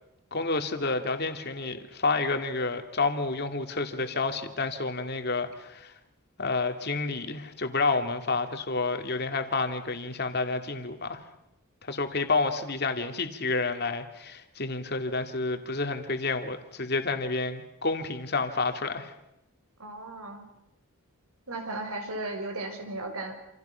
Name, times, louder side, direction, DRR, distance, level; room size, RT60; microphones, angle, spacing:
voice 1, 0.3-5.9 6.4-11.2 11.8-19.1, left 3 dB, 45° left, 2.4 m, -29 dB
voice 2, 19.8-20.4 21.5-23.4, right 2 dB, 75° right, 5.3 m, -35 dB
28.5 x 28.0 x 5.8 m
head